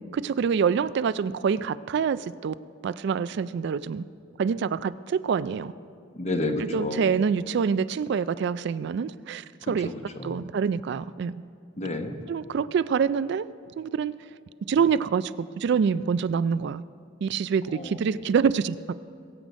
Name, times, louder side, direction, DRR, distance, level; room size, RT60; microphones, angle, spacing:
voice 1, 0.1-2.6 2.8-4.0 4.4-5.7 6.6-9.9 10.2-11.3 12.3-13.5 13.8-14.1 14.7-16.8 17.2-18.9, right 6 dB, 60° right, 16 dB, 0.3 m, -26 dB
voice 2, 6.1-7.0 9.8-10.4 11.8-12.2 17.7-18.0, left 2 dB, 35° left, 5 dB, 1.1 m, -30 dB
23.0 x 7.8 x 5.2 m, 2.4 s
head